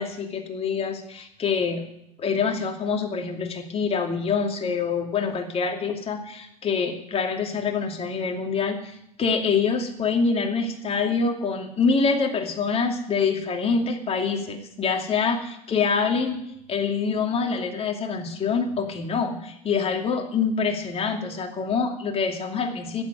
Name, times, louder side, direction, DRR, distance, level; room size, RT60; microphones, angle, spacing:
voice 1, 0.0-1.8 2.2-16.4 16.7-23.0, left 5 dB, 30° left, 3 dB, 2.7 m, -25 dB
11.5 x 9.3 x 9.4 m, 0.77 s
hypercardioid pair, 85°, 18 cm